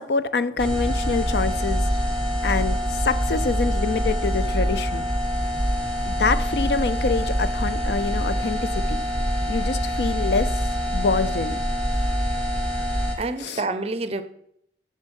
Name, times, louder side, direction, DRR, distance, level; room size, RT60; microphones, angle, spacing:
voice 1, 0.0-1.9 2.4-5.1 6.1-9.0 9.5-10.6 10.9-11.6 13.4-13.6, left 4 dB, 60° left, 0.4 m, -26 dB
sound 1, 0.6-13.1, equal, 5° left, 1.3 m, -25 dB
voice 2, 13.2-14.2, right 3 dB, 35° right, 0.5 m, -28 dB
7.0 x 6.4 x 5.3 m
head